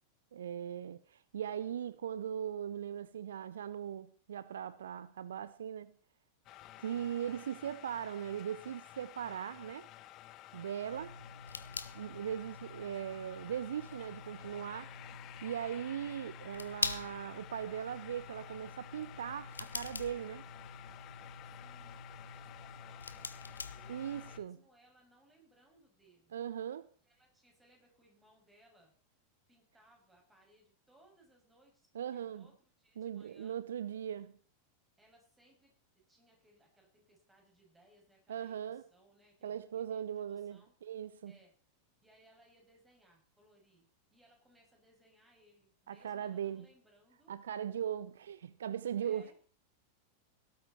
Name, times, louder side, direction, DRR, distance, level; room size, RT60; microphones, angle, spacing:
voice 1, 0.3-5.9 6.8-9.9 10.5-11.2 11.9-14.9 15.4-20.4 23.9-24.6 26.3-26.9 31.9-32.5 33.0-34.3 38.3-38.8 39.4-41.3 45.9-46.7 47.3-49.3, right 9 dB, 65° right, 0.6 m, -39 dB
sound 1, 6.5-24.4, left 14 dB, 35° left, 0.8 m, -53 dB
sound 2, 10.9-24.4, left 4 dB, 75° left, 1.0 m, -45 dB
voice 2, 21.5-26.3 27.0-28.9 29.5-33.6 35.0-40.7 41.3-41.5 42.0-47.4 49.0-49.3, right 1 dB, 10° right, 6.5 m, -67 dB
18.0 x 12.0 x 4.3 m
figure-of-eight pair, 90°, 0 cm